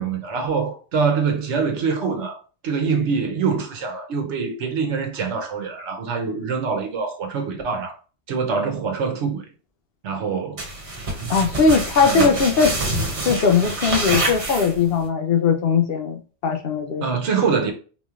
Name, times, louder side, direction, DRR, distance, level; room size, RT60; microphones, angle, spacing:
voice 1, 0.0-8.0 8.3-9.5 10.0-10.7 12.0-12.4 17.0-17.7, right 5 dB, 90° right, 1.1 m, -24 dB
sound 1, 10.6-15.1, right 2 dB, 75° right, 1.3 m, -26 dB
voice 2, 11.3-12.7 13.2-17.0, left 5 dB, 65° left, 0.8 m, -19 dB
4.0 x 3.0 x 2.4 m
omnidirectional pair, 1.2 m